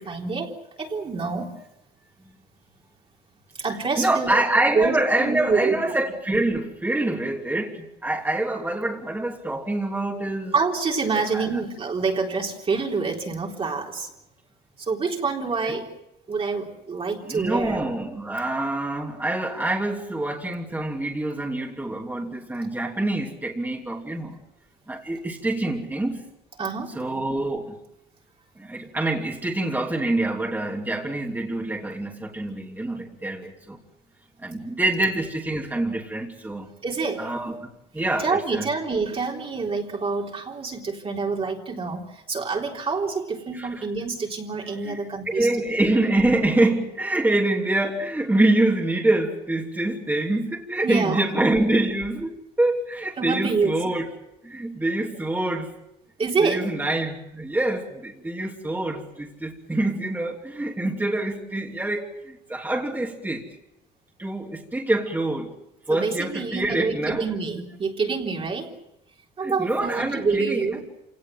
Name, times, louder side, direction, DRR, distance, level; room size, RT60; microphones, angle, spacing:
voice 1, 0.0-1.6 3.5-4.5 4.7-5.8 10.5-14.1 14.8-15.9 16.3-17.8 26.6-27.0 36.8-37.3 38.2-45.5 50.8-51.2 53.2-53.8 56.2-56.7 65.9-68.7 69.4-70.8, right 4 dB, 35° right, 0 dB, 3.8 m, -27 dB
voice 2, 4.0-10.5 11.3-11.5 15.7-15.8 17.2-24.4 24.9-26.2 26.9-27.7 28.6-33.8 34.4-36.7 37.2-37.7 37.9-38.7 43.5-43.9 44.8-45.0 45.3-52.3 52.6-54.1 54.4-55.7 56.4-63.5 64.2-65.5 65.9-67.2 69.4-70.7, right 2 dB, 10° right, -1 dB, 3.1 m, -25 dB
27.0 x 18.0 x 7.7 m, 0.86 s
cardioid pair, 110°, 17 cm